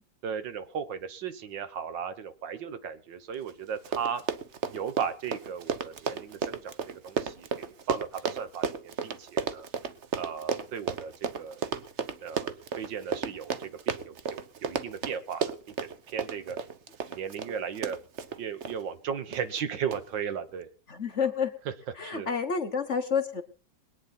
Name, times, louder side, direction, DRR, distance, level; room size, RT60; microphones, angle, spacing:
voice 1, 0.2-4.2 4.7-9.7 10.2-11.6 12.2-16.6 17.1-18.0 18.4-20.7 22.0-22.3, right 7 dB, 75° right, 12 dB, 1.9 m, -36 dB
Run, 3.5-3.6 3.8-18.8 19.3-19.6 19.9-20.0, right 6 dB, 50° right, 1.0 m, -33 dB
voice 2, 20.9-21.5 22.0-23.4, left 6 dB, 45° left, 9 dB, 1.2 m, -29 dB
21.5 x 9.6 x 4.3 m, 0.36 s
omnidirectional pair, 2.0 m